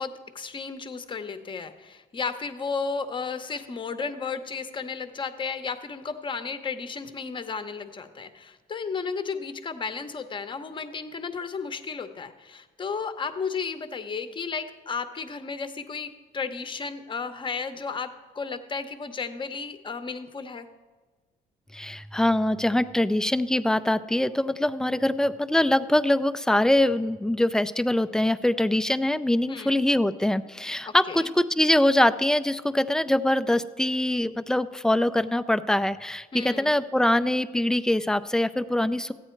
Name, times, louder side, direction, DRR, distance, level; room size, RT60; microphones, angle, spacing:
voice 1, 0.0-18.1 18.3-20.7 29.5-29.8 30.9-31.3 36.3-36.7, left 5 dB, 30° left, 10 dB, 0.8 m, -33 dB
voice 2, 21.7-39.1, left 1 dB, 5° left, 13 dB, 0.4 m, -23 dB
14.0 x 9.1 x 4.5 m, 1.3 s
cardioid pair, 110°, 17 cm